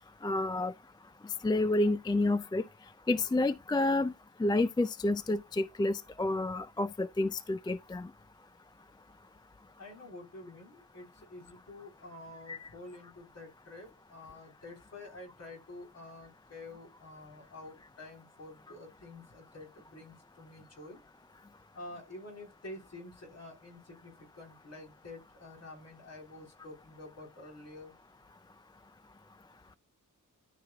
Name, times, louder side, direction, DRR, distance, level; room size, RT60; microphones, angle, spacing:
voice 1, 0.2-0.7 1.4-2.6 3.1-4.1 4.4-8.1 12.5-12.7, left 2 dB, 15° left, 0.3 m, -29 dB
voice 2, 9.8-21.0 21.7-27.9, left 2 dB, 50° left, 3.8 m, -49 dB
12.5 x 5.1 x 2.3 m
wide cardioid pair, 165°, 32 cm